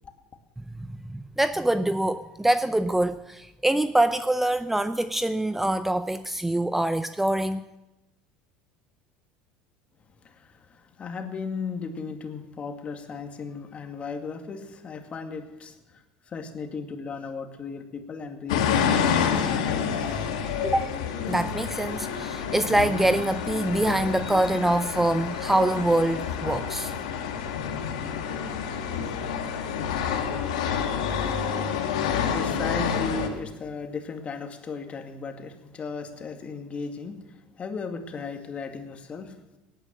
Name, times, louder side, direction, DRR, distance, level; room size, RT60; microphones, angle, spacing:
voice 1, 0.9-7.6 20.6-20.9 21.3-26.9, right 1 dB, 5° right, 13 dB, 0.6 m, -25 dB
voice 2, 10.2-19.7 20.0-20.2 31.5-31.9 32.3-39.3, left 4 dB, 35° left, 6 dB, 2.2 m, -36 dB
sound 1, 18.5-33.3, left 7 dB, 85° left, 1.9 m, -28 dB
18.0 x 9.1 x 7.5 m, 1.0 s
hypercardioid pair, 85°, 4 cm